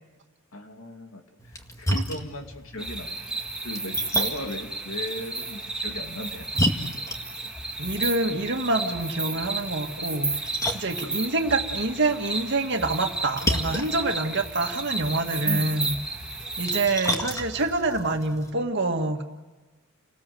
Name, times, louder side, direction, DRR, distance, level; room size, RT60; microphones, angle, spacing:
voice 1, 0.5-1.2 1.5-3.4 3.6-7.0 15.5-15.8, left 1 dB, 70° left, 4 dB, 2.7 m, -37 dB
Splash splatter, 1.4-18.5, equal, 15° left, 2.0 m, -34 dB
sound 1, 2.8-16.9, right 3 dB, 5° right, 2.7 m, -32 dB
voice 2, 7.8-15.9 16.6-19.2, right 2 dB, 55° right, 5 dB, 2.0 m, -26 dB
30.0 x 19.5 x 7.8 m, 1.2 s
head